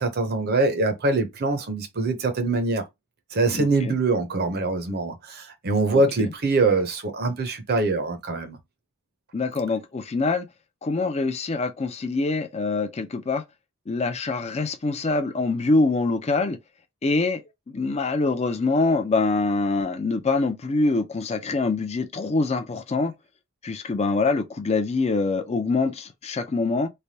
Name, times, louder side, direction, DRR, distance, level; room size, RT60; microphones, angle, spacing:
voice 1, 0.0-2.8 3.3-8.6, right 3 dB, 45° right, 0.6 m, -23 dB
voice 2, 3.5-3.9 5.9-6.3 9.3-10.5 10.8-13.4 13.9-16.6 17.0-17.4 17.7-23.1 23.6-26.9, left 3 dB, 30° left, 0.4 m, -24 dB
3.2 x 2.2 x 2.7 m
head